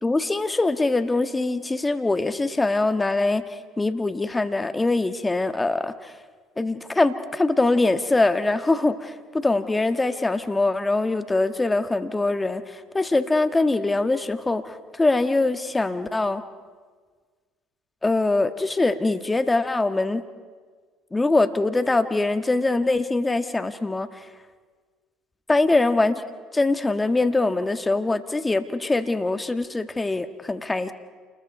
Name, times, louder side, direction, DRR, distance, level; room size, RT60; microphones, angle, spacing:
voice 1, 0.0-3.4 3.8-6.1 6.6-12.6 12.9-16.4 18.0-20.2 21.1-24.1 25.5-26.2 26.5-30.9, left 2 dB, 15° left, 9 dB, 1.5 m, -23 dB
28.5 x 21.0 x 5.3 m, 1.6 s
hypercardioid pair, 70°, 0 cm